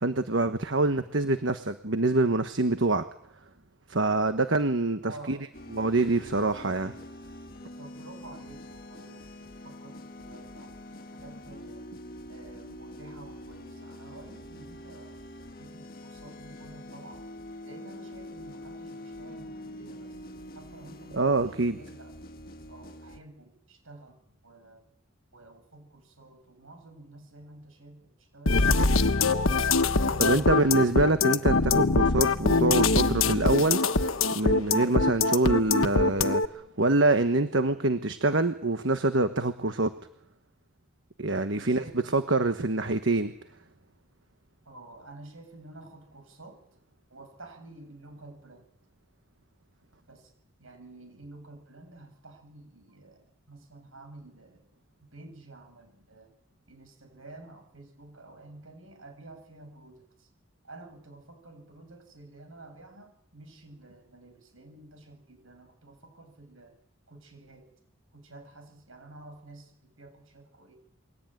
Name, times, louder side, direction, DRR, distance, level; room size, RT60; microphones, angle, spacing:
voice 1, 0.0-3.0 3.9-5.4 5.7-6.9 21.1-21.8 30.2-34.1 34.3-39.9 41.2-41.8 42.1-43.3, right 2 dB, 60° right, 9 dB, 1.3 m, -25 dB
voice 2, 5.0-5.4 7.8-11.9 12.3-15.2 15.5-17.3 17.6-22.1 22.7-24.8 25.3-29.4 29.9-30.5 41.5-42.2 44.6-46.6 47.1-48.7 50.1-50.3 50.6-54.7 55.1-56.3 56.7-60.3 60.6-66.8 67.1-67.7 68.1-70.7, right 2 dB, 75° right, 7 dB, 7.9 m, -50 dB
sound 1, 5.5-23.2, left 1 dB, 45° left, 1.7 m, -45 dB
sound 2, 28.5-36.5, left 3 dB, 75° left, 1.3 m, -23 dB
28.5 x 22.5 x 9.3 m, 0.74 s
head